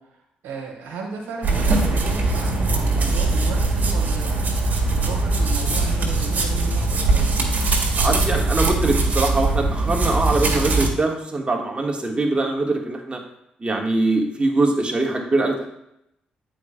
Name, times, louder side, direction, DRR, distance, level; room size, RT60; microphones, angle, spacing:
voice 1, 0.0-4.5 4.9-7.3, right 4 dB, 70° right, 0 dB, 1.4 m, -35 dB
sound 1, 1.4-10.9, right 3 dB, 50° right, 1.6 m, -21 dB
sound 2, 4.6-7.4, right 3 dB, 85° right, 1.0 m, -39 dB
voice 2, 8.0-13.2 13.6-15.7, right 2 dB, 30° right, 1 dB, 1.4 m, -22 dB
9.3 x 4.9 x 2.2 m, 0.81 s
hypercardioid pair, 40°, 4 cm